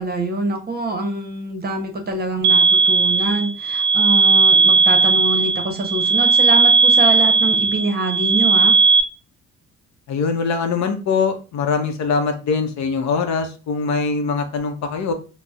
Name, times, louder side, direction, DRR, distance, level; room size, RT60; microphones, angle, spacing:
voice 1, 0.0-8.7, right 2 dB, 30° right, 4 dB, 0.7 m, -25 dB
sound 1, 2.4-9.0, right 4 dB, 75° right, 0.5 m, -16 dB
voice 2, 10.1-15.1, left 5 dB, 65° left, 6 dB, 0.6 m, -22 dB
3.9 x 2.0 x 2.3 m, 0.34 s
cardioid pair, 90°, 30 cm